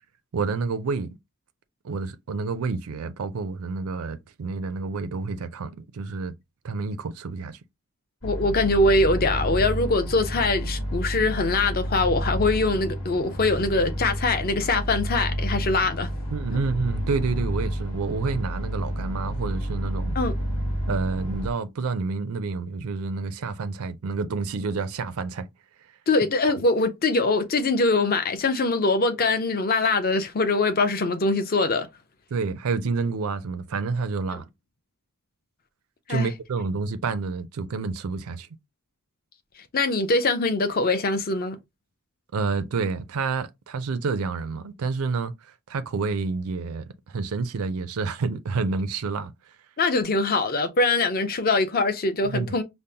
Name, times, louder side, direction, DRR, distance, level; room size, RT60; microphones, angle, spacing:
voice 1, 0.3-1.2 1.8-6.3 6.6-7.6 16.3-20.2 20.9-25.5 32.3-34.5 36.1-38.5 42.3-49.5 52.2-52.6, right 4 dB, 70° right, 0.4 m, -29 dB
sound 1, 8.2-21.5, equal, 55° left, 2.1 m, -30 dB
voice 2, 8.2-16.1 20.2-20.3 26.1-31.9 36.1-36.3 39.7-41.6 49.8-52.6, left 3 dB, 40° left, 0.5 m, -23 dB
5.2 x 2.0 x 2.7 m
head